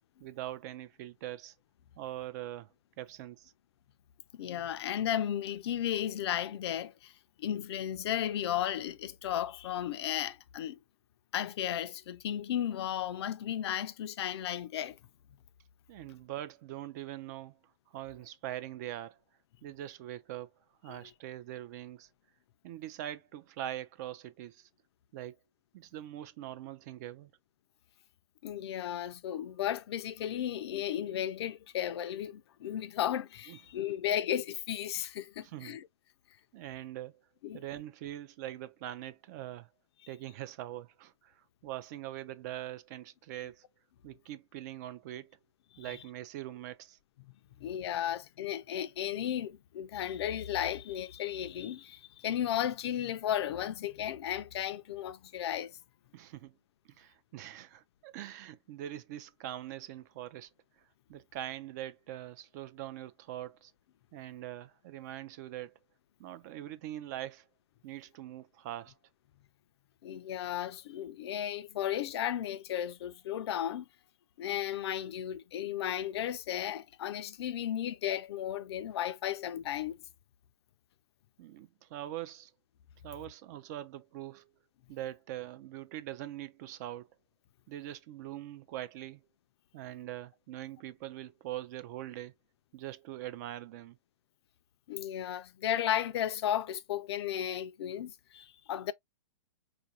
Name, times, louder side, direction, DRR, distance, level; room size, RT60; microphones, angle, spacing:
voice 1, 0.2-1.5 2.0-2.7 3.0-3.5 15.9-17.6 17.9-19.2 19.6-20.5 20.8-22.1 22.6-24.7 25.1-25.4 25.7-27.3 33.5-33.6 35.4-35.8 36.5-37.2 37.5-39.7 40.1-43.6 44.0-45.4 45.8-47.0 56.1-56.5 56.9-60.5 61.1-63.7 64.1-65.7 66.2-67.4 67.8-68.9 81.4-82.5 83.0-84.5 84.9-87.1 87.7-89.2 89.7-92.3 92.7-94.0, right 13 dB, 35° right, 0.4 m, -42 dB
voice 2, 4.3-7.1 7.4-10.8 11.3-15.0 20.9-21.0 28.4-35.9 37.4-37.6 45.7-45.9 47.6-55.8 70.0-73.9 74.4-80.0 94.9-98.9, left 11 dB, 50° left, 0.4 m, -34 dB
4.5 x 2.5 x 2.7 m
hypercardioid pair, 145°, 17 cm